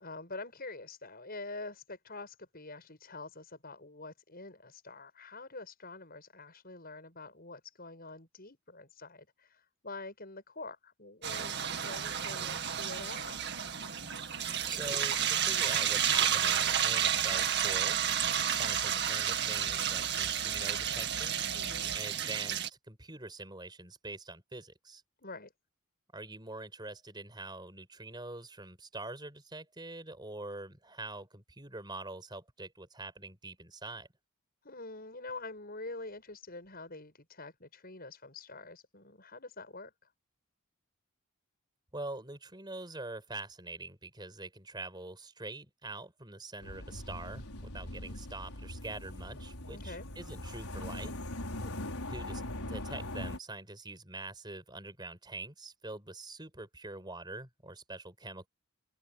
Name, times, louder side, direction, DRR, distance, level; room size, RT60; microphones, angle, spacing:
voice 1, 0.0-13.4 21.5-21.9 25.2-25.5 34.6-39.9 49.7-50.1 51.6-51.9, left 3 dB, 40° left, 7.9 m, -46 dB
sound 1, 11.2-22.7, right 9 dB, 50° right, 2.1 m, -31 dB
sound 2, 12.7-22.0, right 2 dB, 80° right, 7.5 m, -50 dB
voice 2, 14.6-18.0 18.5-21.4 21.9-25.0 26.1-34.1 41.9-51.2 52.1-58.5, right 2 dB, 20° right, 5.1 m, -44 dB
sound 3, 46.6-53.4, left 1 dB, 80° left, 5.0 m, -41 dB
open air
head